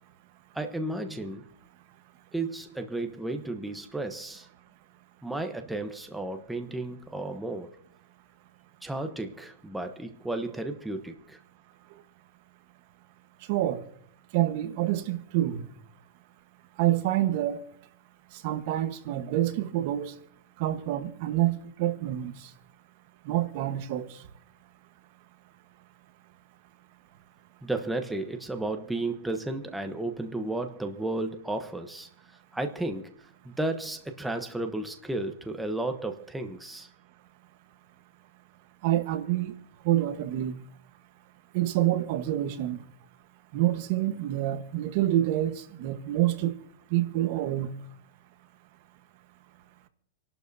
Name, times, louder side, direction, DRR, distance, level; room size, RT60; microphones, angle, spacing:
voice 1, 0.5-1.5 2.3-4.5 5.2-7.8 8.8-11.4 27.6-32.1 32.5-33.1 33.4-36.9, right 2 dB, 5° right, 0.9 m, -33 dB
voice 2, 13.5-13.8 14.3-15.6 16.8-17.6 18.3-20.1 20.6-22.5 23.2-24.2 38.8-39.6 39.8-40.5 41.5-42.8 43.5-46.6 46.9-47.7, right 13 dB, 50° right, 1.2 m, -27 dB
27.5 x 12.0 x 2.7 m
supercardioid pair, 150°, 0 cm